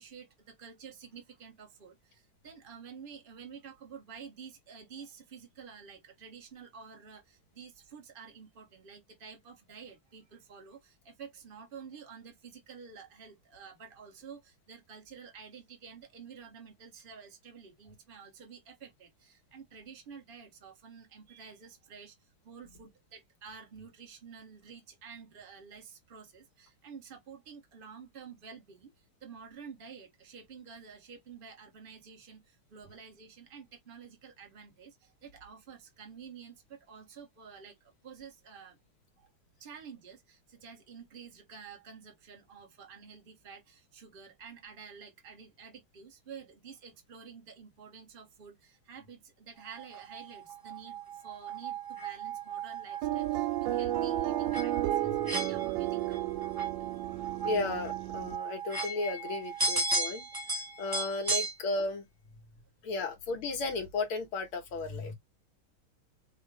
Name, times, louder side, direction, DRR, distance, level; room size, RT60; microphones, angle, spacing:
voice 1, 0.0-28.9 29.2-38.8 39.2-39.3 39.6-56.3, right 6 dB, 30° right, 1.3 m, -50 dB
sound 1, 49.8-61.5, right 4 dB, 15° right, 1.1 m, -36 dB
sound 2, 53.0-58.4, right 14 dB, 75° right, 1.1 m, -33 dB
voice 2, 57.4-62.1 62.8-65.1, left 3 dB, 80° left, 2.3 m, -34 dB
6.0 x 2.5 x 3.3 m
omnidirectional pair, 2.3 m